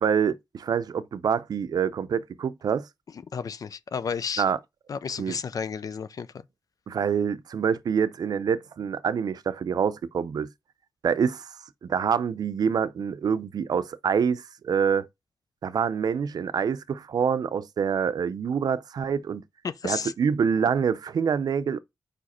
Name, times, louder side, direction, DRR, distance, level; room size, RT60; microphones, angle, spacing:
voice 1, 0.0-2.9 4.4-4.6 5.2-5.4 6.9-10.5 11.0-11.6 11.8-15.1 15.6-19.4 19.8-21.8, right 7 dB, 85° right, 0.5 m, -26 dB
voice 2, 3.3-4.4 4.9-6.3 19.6-20.1, left 6 dB, 65° left, 0.5 m, -32 dB
5.0 x 4.9 x 4.2 m
wide cardioid pair, 115°, 7 cm